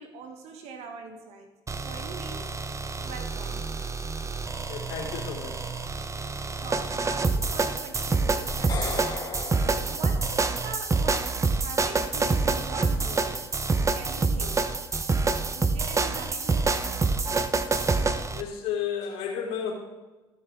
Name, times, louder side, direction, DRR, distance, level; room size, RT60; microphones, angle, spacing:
voice 1, 0.0-1.5 1.8-2.6 3.0-3.6 6.5-9.5 9.9-13.5 13.9-14.6 15.5-16.9, right 5 dB, 65° right, 5 dB, 1.4 m, -42 dB
sound 1, 1.7-18.4, right 3 dB, 25° right, 0.9 m, -27 dB
voice 2, 4.7-5.6 18.3-19.7, left 8 dB, 70° left, -2 dB, 3.3 m, -32 dB
sound 2, 8.5-10.8, left 4 dB, 35° left, 2.7 m, -37 dB
15.5 x 6.5 x 3.7 m, 1.2 s
hypercardioid pair, 60°, 12 cm